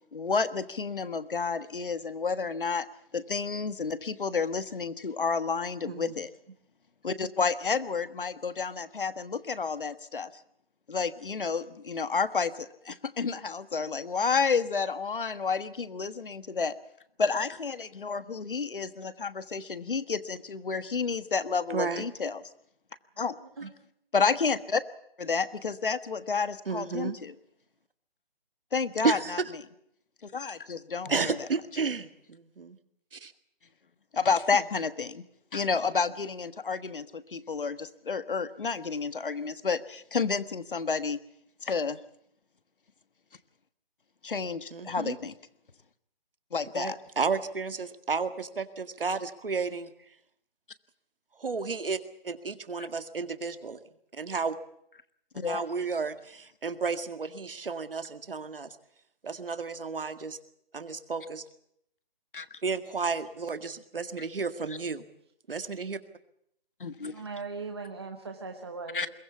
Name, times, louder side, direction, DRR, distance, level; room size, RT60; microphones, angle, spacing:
voice 1, 0.1-2.9 3.1-6.3 7.0-10.3 10.9-16.7 17.2-22.4 23.2-23.4 24.1-24.8 25.2-27.3 28.7-29.4 30.2-31.4 34.1-35.2 35.5-41.2 41.6-42.0 44.2-45.4 46.5-47.0 52.8-52.9 55.3-55.6 62.3-62.6 66.8-67.2 68.9-69.1, left 5 dB, 60° left, 14 dB, 1.4 m, -30 dB
voice 2, 21.7-22.0 23.6-23.7 26.7-27.2 29.0-29.4 31.1-32.8 33.1-33.3 34.5-34.6 44.7-45.2 46.7-49.9 51.4-52.0 52.2-53.8 54.1-54.6 55.4-58.7 59.2-60.4 60.7-61.4 62.6-65.1 65.5-66.0, right 4 dB, 65° right, 10 dB, 2.0 m, -32 dB
voice 3, 67.0-69.1, right 4 dB, 25° right, 4 dB, 1.2 m, -39 dB
22.5 x 17.0 x 8.3 m, 0.72 s
hypercardioid pair, 180°, 29 cm